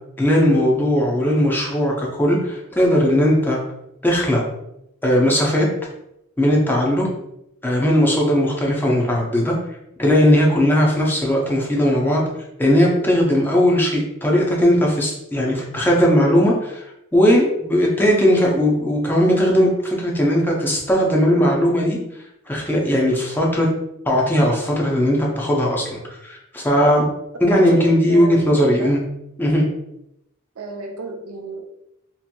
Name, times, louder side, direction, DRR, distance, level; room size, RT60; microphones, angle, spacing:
voice 1, 0.2-3.6 4.0-4.4 5.0-5.7 6.4-7.1 7.6-9.5 10.0-12.2 12.6-22.0 22.5-23.7 24.1-27.0 27.4-29.0 29.4-29.6, equal, 10° left, -2 dB, 0.5 m, -18 dB
voice 2, 27.5-28.9 30.6-31.6, right 3 dB, 85° right, 3 dB, 0.5 m, -31 dB
2.8 x 2.5 x 2.2 m, 0.82 s
head